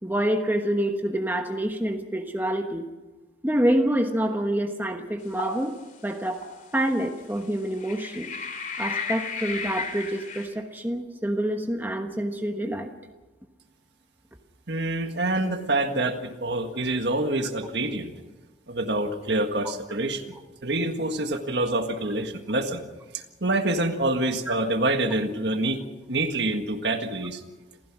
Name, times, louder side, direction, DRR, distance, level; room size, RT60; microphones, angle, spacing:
voice 1, 0.0-2.9 3.4-5.7 6.0-6.4 6.7-8.3 8.8-12.9 24.5-24.6, right 1 dB, 10° right, 4 dB, 1.2 m, -27 dB
sound 1, 5.3-5.6 6.4-6.5 7.8-10.5, left 5 dB, 40° left, 2.9 m, -33 dB
voice 2, 14.7-18.1 18.7-20.2 20.6-22.8 23.1-25.8 26.1-27.4, right 2 dB, 65° right, 6 dB, 1.8 m, -26 dB
28.0 x 15.5 x 6.2 m, 1.2 s
head